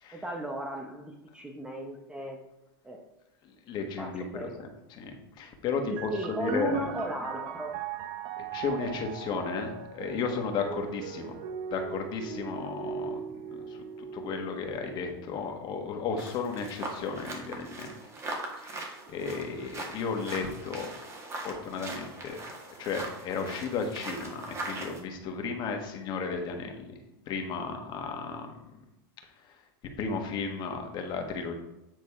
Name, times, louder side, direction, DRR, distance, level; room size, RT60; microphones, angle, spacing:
voice 1, 0.1-2.4 2.8-3.0 4.0-4.6 5.8-7.8, right 1 dB, 10° right, 3 dB, 0.8 m, -35 dB
voice 2, 3.7-6.1 6.4-6.9 8.4-11.4 11.7-13.2 13.5-13.8 14.1-17.9 18.6-20.9 21.4-22.4 22.7-26.8 27.3-28.5 30.0-31.6, left 5 dB, 35° left, 3 dB, 1.5 m, -34 dB
sound 1, 6.0-19.2 20.1-20.8, right 7 dB, 45° right, 0.8 m, -41 dB
sound 2, 16.2-25.0, right 2 dB, 25° right, 1.7 m, -40 dB
9.2 x 4.1 x 4.8 m, 0.90 s
supercardioid pair, 135°, 12 cm